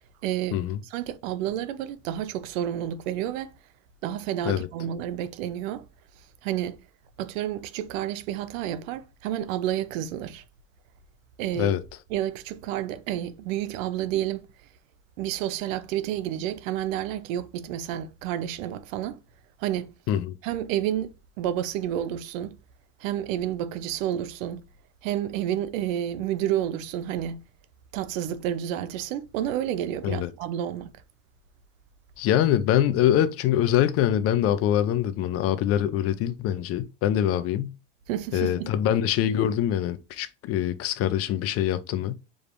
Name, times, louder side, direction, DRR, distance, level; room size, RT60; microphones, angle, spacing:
voice 1, 0.2-3.5 4.0-5.9 6.4-6.8 7.2-10.4 11.4-11.7 12.1-14.5 15.2-19.2 19.6-19.9 20.4-21.1 21.4-22.6 23.0-24.6 25.0-27.4 27.9-30.9 38.1-38.7, right 11 dB, 90° right, 0.7 m, -30 dB
voice 2, 32.2-37.7 38.3-42.1, left 11 dB, 40° left, 0.4 m, -24 dB
4.9 x 3.4 x 2.5 m
supercardioid pair, 135°, 38 cm